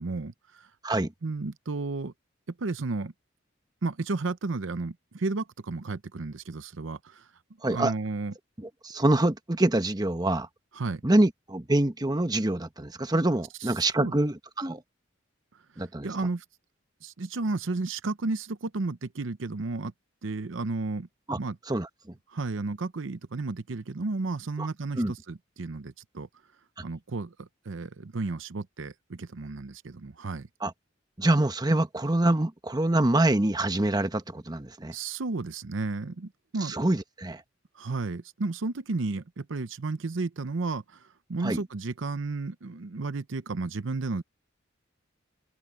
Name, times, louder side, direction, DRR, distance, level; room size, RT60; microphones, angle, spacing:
voice 1, 0.0-0.7 1.2-2.1 2.6-3.1 3.8-7.2 7.7-8.3 10.7-11.0 13.6-14.2 15.8-16.4 17.0-19.9 20.2-21.1 21.4-21.6 22.3-26.3 26.8-30.5 34.9-36.7 37.8-41.0 41.3-44.2, right 3 dB, 70° right, 0.7 m, -33 dB
voice 2, 7.6-7.9 8.6-10.5 11.0-14.8 15.8-16.1 21.3-21.4 21.7-21.9 24.6-24.7 25.0-25.1 30.6-30.7 31.2-34.9 36.6-37.4 41.4-41.6, right 1 dB, 20° right, 1.1 m, -25 dB
open air
head